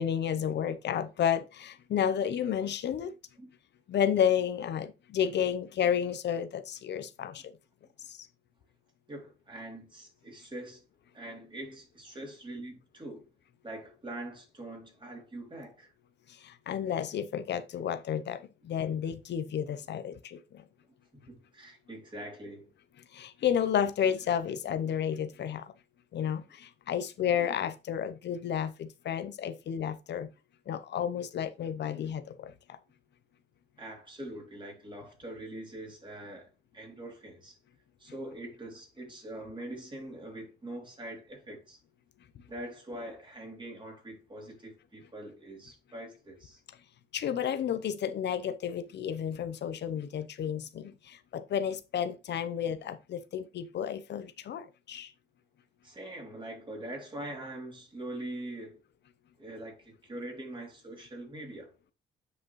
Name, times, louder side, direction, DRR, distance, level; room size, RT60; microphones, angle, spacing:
voice 1, 0.0-3.1 3.9-7.4 8.1-8.2 16.4-18.4 18.6-20.4 23.1-25.6 26.1-30.3 30.7-32.5 47.1-55.1, left 8 dB, 60° left, 0.7 m, -31 dB
voice 2, 9.1-10.8 11.1-13.3 13.6-15.9 21.2-22.7 33.8-37.6 38.0-41.8 42.5-46.6 55.8-58.8 59.4-61.9, right 1 dB, 25° right, 3.0 m, -43 dB
8.3 x 5.1 x 3.1 m
cardioid pair, 90°, 20 cm